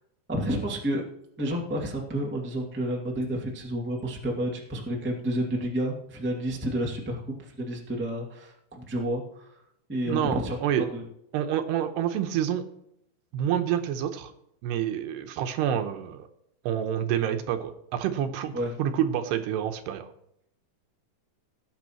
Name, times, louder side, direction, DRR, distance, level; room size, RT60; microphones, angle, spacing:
voice 1, 0.3-1.0 1.4-9.5 9.9-10.6 10.9-11.0 18.5-18.7, right 1 dB, 15° right, -1 dB, 0.4 m, -30 dB
voice 2, 10.1-10.9 11.3-12.7 13.3-14.3 14.6-16.3 16.7-18.5 18.8-20.1, right 10 dB, 75° right, 7 dB, 2.9 m, -28 dB
18.5 x 9.2 x 3.1 m, 0.76 s
omnidirectional pair, 5.0 m